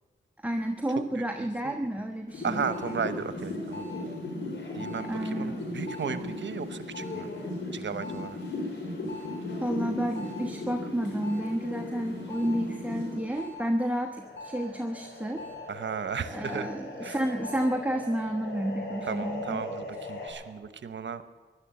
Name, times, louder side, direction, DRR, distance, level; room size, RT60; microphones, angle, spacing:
voice 1, 0.4-2.7 5.0-5.6 9.6-15.4 16.3-19.6, right 1 dB, 10° right, 4 dB, 1.2 m, -31 dB
sound 1, 2.3-13.6 13.9-20.3, left 2 dB, 75° left, 4.2 m, -37 dB
voice 2, 2.4-3.9 4.7-7.3 7.7-8.4 15.7-16.7 17.0-17.2 19.1-21.2, right 6 dB, 70° right, 11 dB, 0.9 m, -35 dB
16.0 x 11.5 x 7.6 m, 1.3 s
cardioid pair, 50°, 20 cm